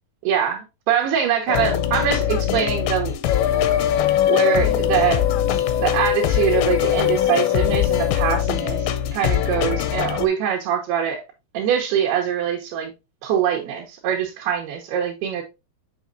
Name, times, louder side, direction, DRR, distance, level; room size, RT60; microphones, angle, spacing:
voice 1, 0.2-3.1 4.3-5.2 5.8-11.2 11.5-12.9 13.2-15.4, right 8 dB, 80° right, 3.1 m, -23 dB
sound 1, 1.5-10.3, left 10 dB, 80° left, 2.6 m, -21 dB
6.3 x 6.2 x 2.5 m
omnidirectional pair, 4.6 m